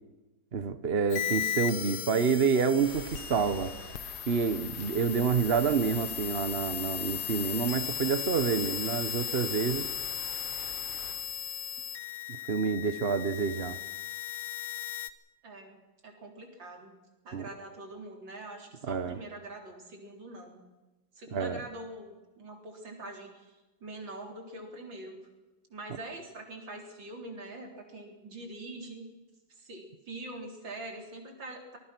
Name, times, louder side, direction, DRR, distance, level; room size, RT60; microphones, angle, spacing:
voice 1, 0.5-3.7 4.3-9.9 12.5-13.8 17.3-17.5 18.9-19.2 21.3-21.6, right 5 dB, 40° right, 11 dB, 1.0 m, -28 dB
sound 1, 1.1-15.1, left 10 dB, 90° left, 1.9 m, -36 dB
Rain, 2.8-11.1, left 1 dB, 50° left, 5.5 m, -47 dB
voice 2, 15.4-15.8 16.0-16.9 17.2-20.7 21.2-23.5 23.8-25.2 25.7-29.1 29.6-31.8, right 2 dB, 65° right, 2 dB, 4.5 m, -44 dB
25.0 x 20.0 x 6.1 m, 1.1 s
omnidirectional pair, 2.2 m